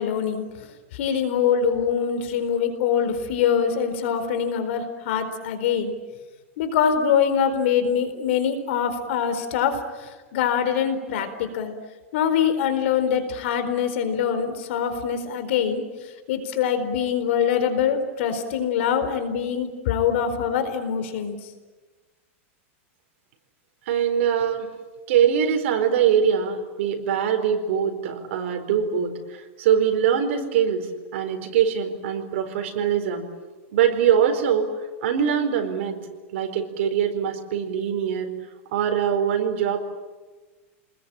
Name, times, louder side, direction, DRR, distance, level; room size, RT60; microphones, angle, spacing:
voice 1, 0.0-5.9 6.6-11.7 12.1-21.4, left 8 dB, 60° left, 9 dB, 4.3 m, -24 dB
voice 2, 23.9-24.7 25.1-33.3 33.7-34.7 35.0-36.0 36.3-38.3 38.7-39.8, right 8 dB, 65° right, 6 dB, 4.4 m, -23 dB
28.5 x 21.0 x 9.0 m, 1.3 s
supercardioid pair, 155°, 7 cm